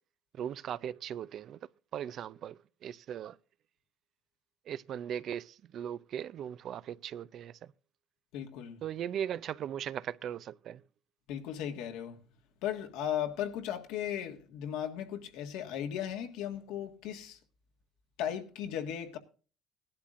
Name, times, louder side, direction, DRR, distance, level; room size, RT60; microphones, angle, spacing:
voice 1, 0.4-1.6 1.9-3.4 4.7-7.7 8.8-10.8, right 9 dB, 50° right, 0.5 m, -38 dB
voice 2, 8.3-8.8 11.3-12.2 12.6-17.4 18.2-19.2, left 10 dB, 80° left, 1.7 m, -36 dB
17.5 x 11.5 x 2.5 m
cardioid pair, 110°, 0 cm